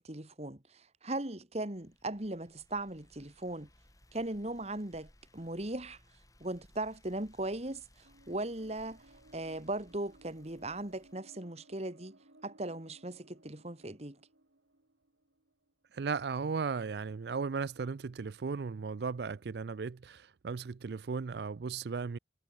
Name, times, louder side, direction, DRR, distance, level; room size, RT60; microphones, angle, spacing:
voice 1, 0.0-3.7 4.1-6.0 6.4-9.0 9.3-12.2 12.4-14.2, right 2 dB, 35° right, 2.1 m, -38 dB
sound 1, 1.7-11.1, left 1 dB, 20° left, 6.0 m, -64 dB
sound 2, 8.0-16.2, right 2 dB, 85° right, 3.0 m, -62 dB
voice 2, 15.9-22.2, right 5 dB, 65° right, 0.4 m, -36 dB
head